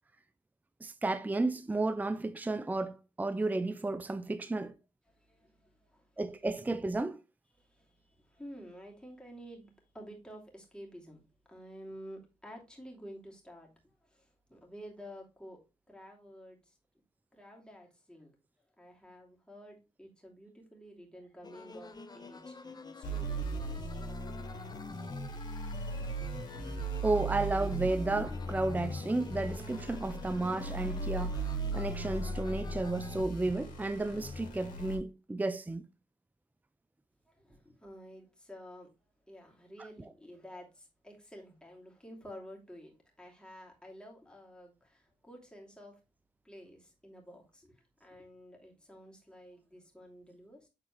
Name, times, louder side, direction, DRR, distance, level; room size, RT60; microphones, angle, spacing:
voice 1, 0.8-4.7 6.2-7.2 27.0-31.5 31.7-35.9, right 2 dB, 10° right, 0.5 m, -33 dB
voice 2, 5.1-6.1 7.6-11.2 11.5-13.7 14.0-15.6 15.9-16.7 17.3-18.3 18.8-24.5 37.3-38.9 39.3-42.9 43.2-45.9 46.4-50.7, equal, 5° left, 2.8 m, -51 dB
sound 1, 21.4-33.2, left 3 dB, 30° left, 0.9 m, -48 dB
sound 2, 23.0-34.9, right 2 dB, 75° left, 1.8 m, -38 dB
7.4 x 4.1 x 3.2 m
supercardioid pair, 50°, 14 cm